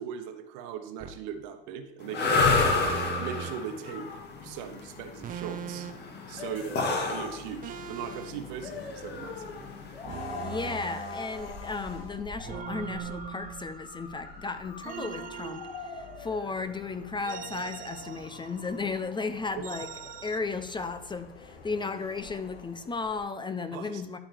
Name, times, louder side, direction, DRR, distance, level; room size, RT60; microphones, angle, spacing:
voice 1, 0.0-2.4 2.8-4.1 4.4-5.9 6.3-9.4 23.7-24.0, right 8 dB, 65° right, 7 dB, 1.1 m, -39 dB
sound 1, 1.0-1.3 2.8-3.5 5.2-6.1 7.6-8.3 10.0-11.5 12.4-14.0 14.8-16.5 17.2-18.7 19.6-20.4, right 9 dB, 30° right, 0.6 m, -41 dB
sound 2, 2.1-10.1, left 3 dB, 35° left, 1.6 m, -28 dB
sound 3, 3.9-23.2, left 4 dB, 90° left, 1.3 m, -44 dB
voice 2, 10.4-19.9 20.2-24.2, left 4 dB, 15° left, 10 dB, 0.6 m, -35 dB
12.0 x 4.8 x 3.4 m, 0.87 s
hypercardioid pair, 85°, 29 cm